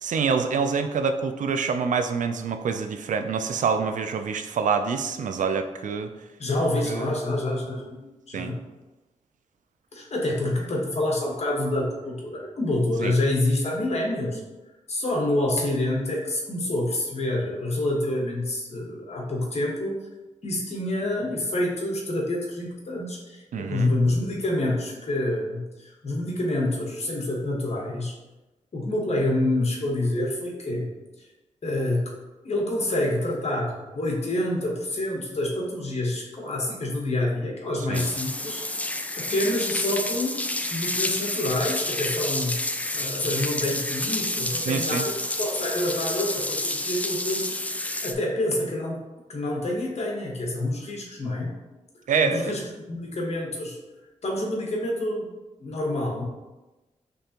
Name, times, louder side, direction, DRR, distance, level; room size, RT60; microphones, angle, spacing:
voice 1, 0.0-6.1 6.8-7.1 8.3-8.5 13.0-13.1 23.5-23.9 37.9-38.0 44.6-45.0 52.1-52.5, right 5 dB, 80° right, 8 dB, 0.4 m, -26 dB
voice 2, 6.4-8.6 9.9-14.4 14.9-20.0 20.4-28.2 28.7-30.9 31.6-32.1 32.4-40.4 40.7-42.6 42.9-47.4 47.7-49.0 49.3-51.6 52.2-52.6 52.9-53.8 54.2-55.3 55.6-56.2, left 1 dB, 55° left, -1 dB, 1.2 m, -27 dB
sound 1, 37.9-48.1, left 1 dB, 10° left, 0.3 m, -29 dB
5.2 x 3.3 x 2.9 m, 1.1 s
wide cardioid pair, 85°, 13 cm